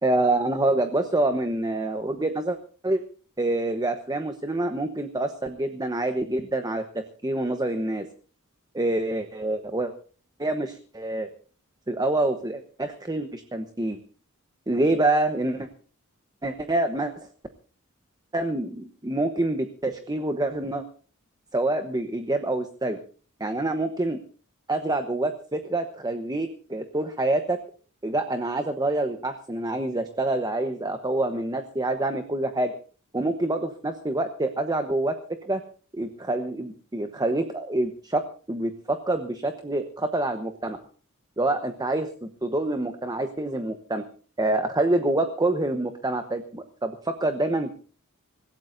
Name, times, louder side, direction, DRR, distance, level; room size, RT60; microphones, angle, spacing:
voice 1, 0.0-2.6 2.8-3.0 3.4-6.8 7.2-8.1 8.7-9.9 10.4-11.3 11.9-14.0 14.7-15.7 16.4-17.3 18.3-20.8 21.5-23.0 23.4-24.2 24.7-27.6 28.0-32.7 33.1-35.1 35.4-35.6 35.9-38.2 38.5-40.8 41.4-44.0 44.4-47.7, right 2 dB, 20° right, 7 dB, 1.1 m, -26 dB
26.0 x 16.5 x 2.7 m, 0.41 s
head